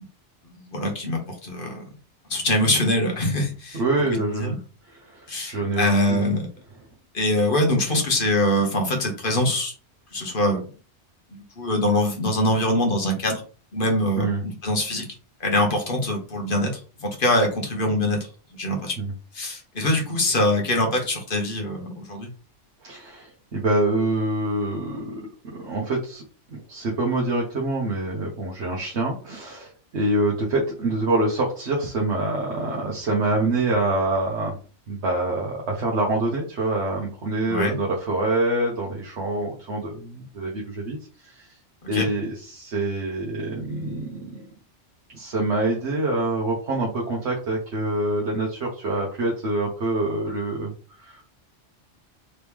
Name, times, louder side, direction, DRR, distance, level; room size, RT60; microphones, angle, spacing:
voice 1, 0.7-1.9 2.3-3.8 4.3-4.6 5.3-6.5 7.1-9.7 10.1-10.6 11.3-13.4 13.7-15.1 15.4-16.7 17.0-19.0 19.3-22.3 37.5-37.8 41.9-42.1, left 1 dB, 50° left, 1 dB, 1.4 m, -23 dB
voice 2, 3.7-4.6 4.9-6.4 7.8-8.0 14.2-14.4 19.0-19.1 22.8-26.2 26.5-34.6 34.9-41.5 41.9-44.4 45.1-50.7 51.0-51.3, right 2 dB, 70° right, -2 dB, 1.3 m, -26 dB
4.0 x 3.2 x 3.5 m, 0.37 s
omnidirectional pair, 1.2 m